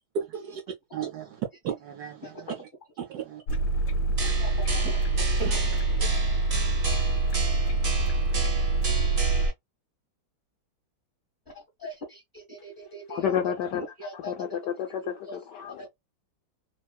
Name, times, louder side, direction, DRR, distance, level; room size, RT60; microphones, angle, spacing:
voice 1, 0.1-0.6 0.9-2.7 3.0-3.4 4.2-4.4 5.4-5.7, right 7 dB, 75° right, 0.9 m, -35 dB
sound 1, 3.5-9.5, right 2 dB, 90° left, 1.5 m, -25 dB
voice 2, 4.2-5.0 11.5-13.4 13.8-14.3 15.3-15.4 15.8-15.9, equal, 30° left, 1.2 m, -41 dB
sound 2, 4.2-9.5, right 4 dB, 50° right, 0.6 m, -32 dB
voice 3, 13.1-13.8 14.1-15.9, left 9 dB, 75° left, 1.0 m, -30 dB
3.5 x 2.3 x 2.3 m
omnidirectional pair, 2.2 m